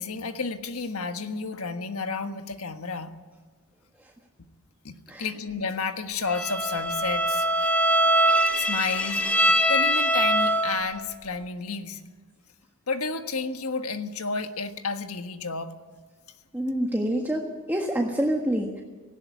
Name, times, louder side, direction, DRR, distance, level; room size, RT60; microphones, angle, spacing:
voice 1, 0.0-3.1 4.8-7.7 8.5-9.3 9.7-12.0 12.9-15.7, left 4 dB, 75° left, 7 dB, 1.5 m, -31 dB
Bowed string instrument, 6.3-11.0, right 1 dB, 5° left, 2.3 m, -23 dB
voice 2, 16.5-17.4 17.7-18.8, right 1 dB, 10° right, 0 dB, 1.6 m, -26 dB
18.5 x 16.0 x 9.4 m, 1.4 s
head